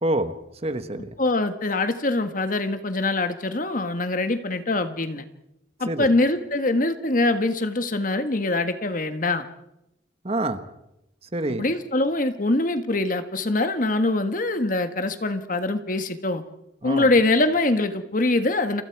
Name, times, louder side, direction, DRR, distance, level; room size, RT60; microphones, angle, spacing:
voice 1, 0.0-0.3 0.6-1.1 5.9-6.1 10.2-10.6 11.3-11.6 16.8-17.1, right 1 dB, 35° right, 9 dB, 1.4 m, -26 dB
voice 2, 1.2-5.2 5.8-9.4 11.5-16.4 16.8-18.8, left 2 dB, 45° left, 9 dB, 1.5 m, -23 dB
29.0 x 28.0 x 4.8 m, 0.88 s
head